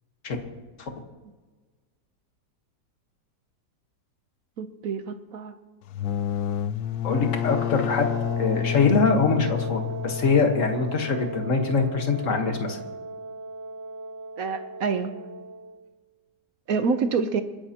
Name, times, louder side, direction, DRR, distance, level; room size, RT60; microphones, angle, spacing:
voice 1, 4.6-5.5 14.4-15.1 16.7-17.4, right 5 dB, 60° right, 9 dB, 1.1 m, -27 dB
sound 1, 5.8-11.4, left 10 dB, 70° left, 1.0 m, -29 dB
voice 2, 7.0-8.1 8.4-12.8, left 4 dB, 50° left, 4 dB, 1.7 m, -23 dB
Wind instrument woodwind instrument, 8.0-15.8, right 3 dB, 85° right, 1.5 m, -37 dB
28.5 x 10.5 x 2.9 m, 1.3 s
omnidirectional pair, 1.9 m